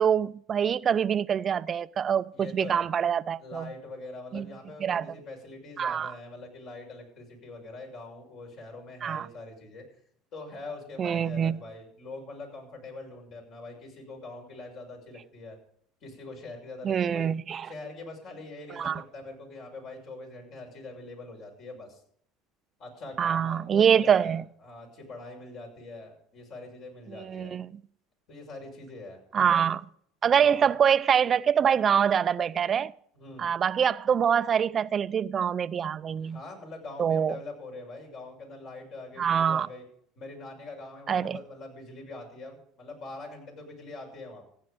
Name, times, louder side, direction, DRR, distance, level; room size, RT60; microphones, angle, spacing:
voice 1, 0.0-3.7 4.3-4.5 4.8-5.1 5.8-6.1 9.0-9.3 11.0-11.6 16.8-17.7 18.7-19.0 23.2-24.4 27.1-27.7 29.3-29.8 30.2-32.9 33.4-36.4 37.0-37.3 39.2-39.7 41.1-41.4, right 8 dB, 40° right, 0.5 m, -25 dB
voice 2, 2.3-2.9 3.4-9.8 10.3-15.6 16.0-17.3 17.6-22.0 22.8-27.5 28.3-29.2 29.5-29.6 30.3-30.7 33.1-33.5 36.2-39.8 40.2-44.5, left 2 dB, 55° left, 6.2 m, -43 dB
15.0 x 9.9 x 5.2 m
hypercardioid pair, 80°, 0 cm